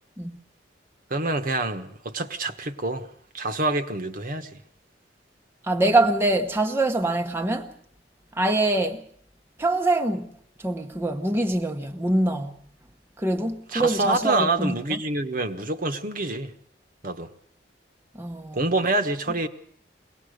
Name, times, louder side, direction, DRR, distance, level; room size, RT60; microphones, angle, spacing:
voice 1, 1.1-3.1 3.3-4.5 13.7-16.5 17.0-17.3 18.5-19.5, right 2 dB, 50° right, 1.3 m, -26 dB
voice 2, 5.6-7.7 8.3-9.0 9.6-10.3 10.6-12.6 13.2-15.0 18.1-18.6, right 2 dB, 15° right, 1.0 m, -24 dB
23.0 x 18.5 x 6.6 m
head